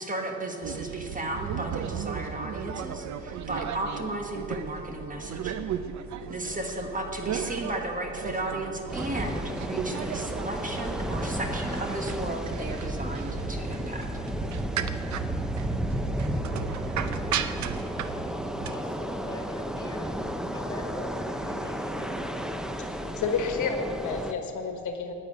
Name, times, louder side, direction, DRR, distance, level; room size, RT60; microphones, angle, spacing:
voice 1, 0.0-5.6 6.3-14.1, right 1 dB, 25° right, 2 dB, 1.4 m, -34 dB
sound 1, 0.6-18.7, right 8 dB, 70° right, 0.7 m, -36 dB
sound 2, 8.9-24.3, equal, ahead, 0.7 m, -33 dB
voice 2, 18.6-22.6, left 1 dB, 15° left, -3 dB, 3.5 m, -42 dB
voice 3, 23.2-25.1, left 5 dB, 75° left, 5 dB, 1.3 m, -30 dB
9.4 x 8.7 x 9.8 m, 2.8 s
cardioid pair, 90°, 30 cm